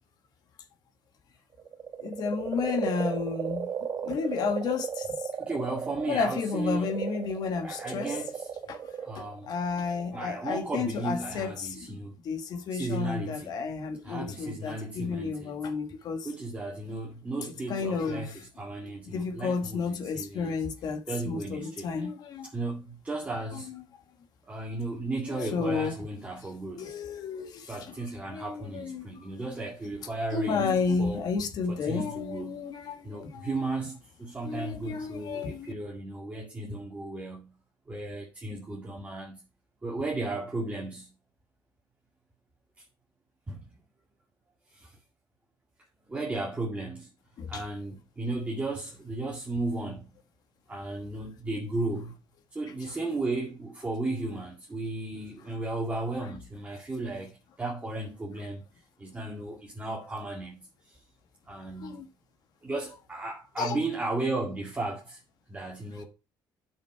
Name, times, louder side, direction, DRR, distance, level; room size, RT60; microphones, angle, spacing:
sound 1, 1.6-10.3, right 7 dB, 40° right, 1.2 m, -35 dB
voice 1, 2.0-3.7 4.0-5.1 6.1-8.2 8.7-8.8 9.1-12.0 12.2-16.3 17.7-18.3 19.1-22.5 23.5-23.6 25.2-25.9 26.8-27.7 28.3-29.2 30.3-33.5 34.4-35.7 47.4-47.6 61.8-62.0 63.6-63.8, left 5 dB, 60° left, 1.5 m, -32 dB
voice 2, 5.4-7.0 7.6-8.5 9.0-9.5 10.1-12.1 12.7-13.6 14.0-15.7 16.2-20.6 21.1-22.1 22.4-23.7 24.5-27.0 27.6-31.2 31.7-32.7 33.0-37.5 37.9-39.4 39.8-41.1 43.5-43.7 44.7-45.0 46.1-47.1 47.5-50.1 50.7-52.1 52.5-58.6 59.0-60.7 61.5-62.1 62.6-65.2 65.5-66.0, right 2 dB, 20° right, 2.1 m, -35 dB
8.9 x 6.3 x 4.5 m
cardioid pair, 125°, 8 cm